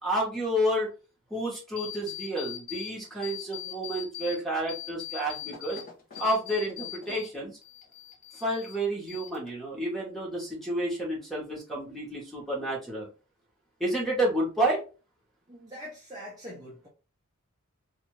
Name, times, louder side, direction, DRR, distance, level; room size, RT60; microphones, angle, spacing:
voice 1, 0.0-0.9 1.3-5.8 6.2-7.6 8.3-13.1 13.8-14.8, right 1 dB, ahead, 1.1 m, -30 dB
sound 1, 1.8-2.9 3.2-4.4 4.7-7.3 7.6-8.8 9.1-9.7, left 13 dB, 40° left, 0.8 m, -40 dB
voice 2, 15.5-16.9, equal, 15° right, 0.6 m, -43 dB
2.7 x 2.5 x 3.1 m
head